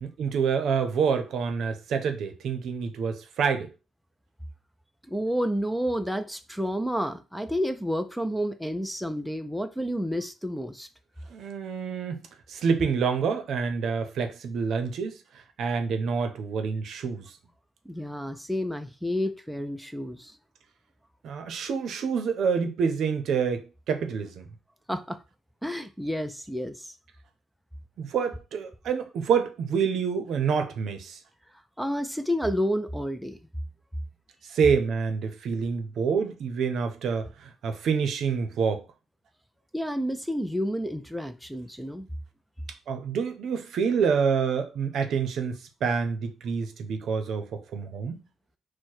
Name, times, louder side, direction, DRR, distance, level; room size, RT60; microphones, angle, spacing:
voice 1, 0.0-3.7 11.3-12.2 12.5-15.2 15.6-17.3 21.2-24.5 28.0-31.2 34.5-38.8 42.9-48.2, right 6 dB, 70° right, 0.7 m, -27 dB
voice 2, 5.1-10.9 17.9-20.4 24.9-25.2 25.6-26.9 31.8-33.4 39.7-42.1, equal, ahead, 0.4 m, -30 dB
4.6 x 2.2 x 4.4 m
cardioid pair, 90°, 0 cm